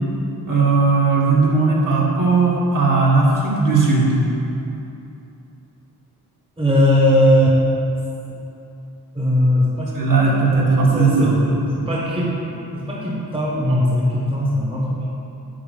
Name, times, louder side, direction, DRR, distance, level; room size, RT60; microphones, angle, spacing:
voice 1, 0.5-4.2 9.9-11.4, right 4 dB, 50° right, -5 dB, 2.0 m, -17 dB
voice 2, 6.6-7.6 9.1-9.9 10.5-15.1, equal, 15° right, -4 dB, 1.2 m, -19 dB
8.7 x 6.0 x 6.8 m, 2.9 s
wide cardioid pair, 160°, 40 cm